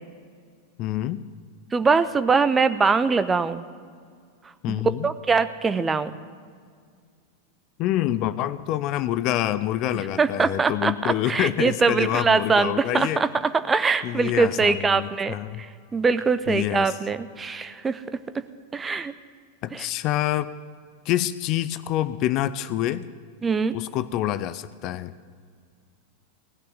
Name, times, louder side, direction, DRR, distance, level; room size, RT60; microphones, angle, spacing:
voice 1, 0.8-1.2 4.6-5.1 7.8-13.2 14.0-15.7 16.5-16.9 19.6-20.5 21.1-23.1 23.7-25.1, left 13 dB, 40° left, 15 dB, 0.5 m, -26 dB
voice 2, 1.7-3.6 4.7-6.1 10.2-15.7 15.9-18.0 18.3-18.4 18.7-19.1 19.7-19.9 23.4-23.7, right 4 dB, 15° right, 13 dB, 0.7 m, -22 dB
17.5 x 6.4 x 9.7 m, 2.1 s
figure-of-eight pair, 90°, 0 cm